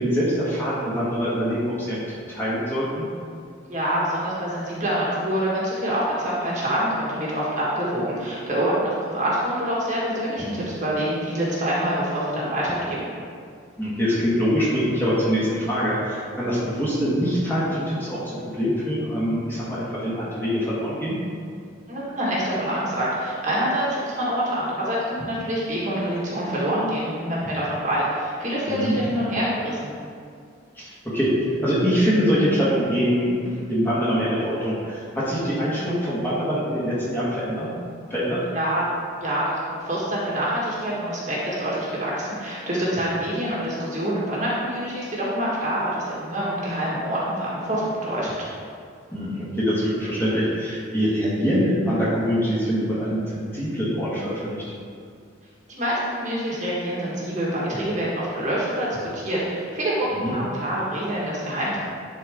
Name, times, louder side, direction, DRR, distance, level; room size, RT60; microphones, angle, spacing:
voice 1, 0.0-3.1 13.8-21.2 28.7-29.0 30.8-31.3 31.6-37.7 38.1-38.4 49.1-54.6 60.2-60.3, equal, 10° left, -9 dB, 1.7 m, -24 dB
voice 2, 3.7-13.1 21.9-29.9 38.5-38.9 39.2-48.5 55.7-61.8, right 1 dB, 40° right, -6 dB, 1.7 m, -26 dB
10.5 x 4.5 x 3.6 m, 2.3 s
head